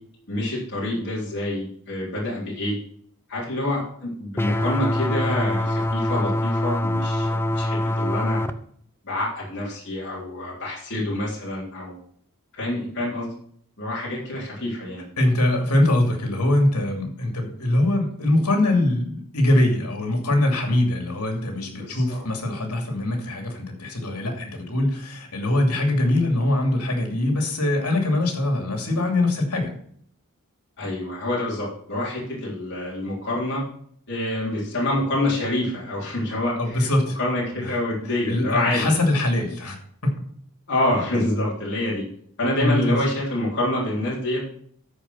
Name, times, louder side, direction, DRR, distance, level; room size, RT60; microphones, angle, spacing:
voice 1, 0.3-2.8 3.3-8.4 9.0-12.0 12.5-13.3 13.8-15.1 21.8-22.2 30.8-33.6 34.1-36.9 37.2-38.9 40.7-42.0 42.4-44.4, left 1 dB, 55° left, -6 dB, 3.7 m, -27 dB
sound 1, 4.4-8.5, left 1 dB, 10° left, 0.5 m, -24 dB
voice 2, 15.2-29.7 36.6-37.2 37.5-37.8 38.1-39.8 42.6-43.0, left 1 dB, 85° left, 3 dB, 2.8 m, -22 dB
13.0 x 5.0 x 5.7 m, 0.62 s
head